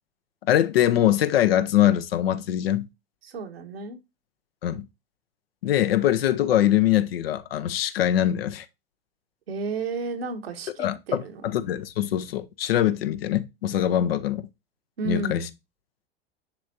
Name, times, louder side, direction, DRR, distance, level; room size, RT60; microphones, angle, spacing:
voice 1, 0.5-2.9 4.6-4.9 5.6-8.7 10.8-14.5 15.1-15.4, left 12 dB, 75° left, 0.9 m, -23 dB
voice 2, 3.2-4.0 9.5-11.5 15.0-15.5, right 3 dB, 80° right, 1.5 m, -32 dB
10.5 x 3.4 x 2.7 m
hypercardioid pair, 100°, 30 cm